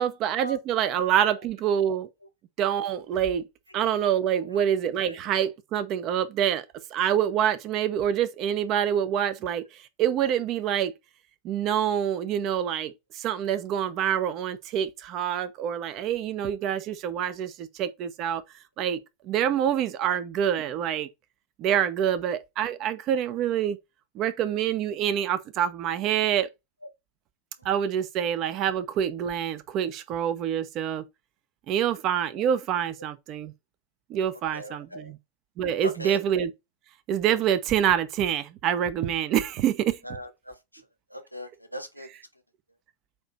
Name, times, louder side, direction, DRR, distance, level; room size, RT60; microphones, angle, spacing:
voice 1, 0.0-2.1 2.6-3.5 3.7-6.6 6.9-10.9 11.4-18.4 18.8-21.1 21.6-23.8 24.1-26.5 27.6-31.1 31.7-33.5 34.1-35.2 35.6-36.5 37.1-40.0, right 9 dB, 35° right, 0.8 m, -26 dB
voice 2, 34.5-35.1 35.8-36.3 40.0-40.8 41.1-42.1, equal, 90° left, 1.0 m, -39 dB
7.9 x 3.0 x 4.1 m
figure-of-eight pair, 90°, 0 cm